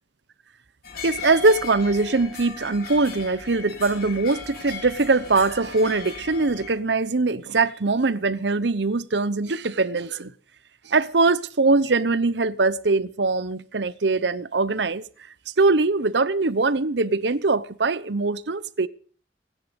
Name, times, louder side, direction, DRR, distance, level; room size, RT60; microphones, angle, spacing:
sound 1, 0.8-6.7, left 5 dB, 55° left, 4.5 m, -38 dB
voice 1, 1.0-10.3 10.8-15.0 15.5-18.9, right 3 dB, 75° right, 0.9 m, -22 dB
25.5 x 10.5 x 5.2 m
head